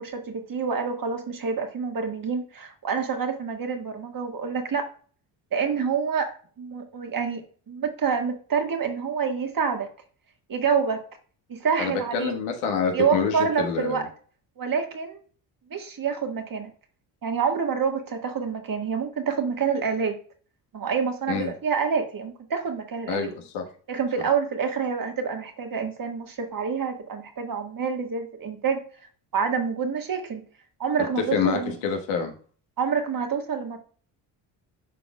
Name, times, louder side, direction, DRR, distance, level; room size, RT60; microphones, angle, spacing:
voice 1, 0.0-4.9 5.5-6.3 6.6-7.4 7.7-9.9 10.5-11.0 11.5-12.3 12.9-14.0 14.6-15.2 15.7-16.7 17.2-20.1 20.7-23.3 23.9-28.8 29.3-30.4 30.8-31.7 32.8-33.8, right 6 dB, 40° right, 4 dB, 1.7 m, -27 dB
voice 2, 11.8-14.0 21.3-21.5 23.1-23.6 31.3-32.3, left 6 dB, 85° left, 3 dB, 1.5 m, -27 dB
11.0 x 4.2 x 2.3 m, 0.43 s
supercardioid pair, 65°, 50 cm